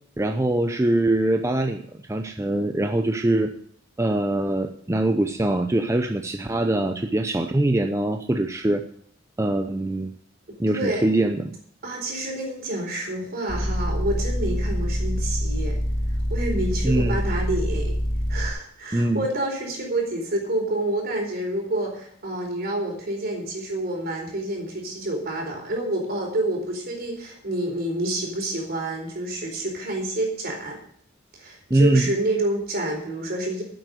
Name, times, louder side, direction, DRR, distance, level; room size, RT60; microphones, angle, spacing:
voice 1, 0.2-1.8 2.1-3.5 4.0-8.8 9.4-10.1 10.6-11.5 16.8-17.2 18.9-19.2 31.7-32.1, right 1 dB, 15° right, 5 dB, 0.6 m, -23 dB
voice 2, 10.7-11.1 11.8-15.8 16.3-18.0 18.3-30.8 31.3-33.6, right 1 dB, 50° right, 1 dB, 4.3 m, -28 dB
sound 1, 13.5-18.5, equal, 85° left, 3.2 m, -25 dB
9.6 x 7.9 x 9.0 m, 0.63 s
head